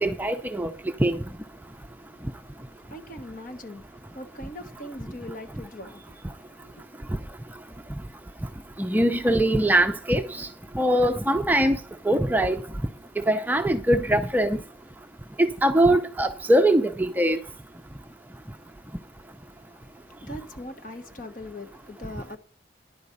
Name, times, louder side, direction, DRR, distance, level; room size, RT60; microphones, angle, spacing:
voice 1, 0.0-0.7 1.0-1.2 8.8-10.5 10.7-11.8 12.0-12.7 13.3-14.6 15.4-17.4, right 1 dB, 10° right, 0.5 m, -22 dB
voice 2, 2.1-6.8 19.5-22.4, left 1 dB, 45° left, 1.4 m, -42 dB
10.5 x 5.1 x 8.3 m
head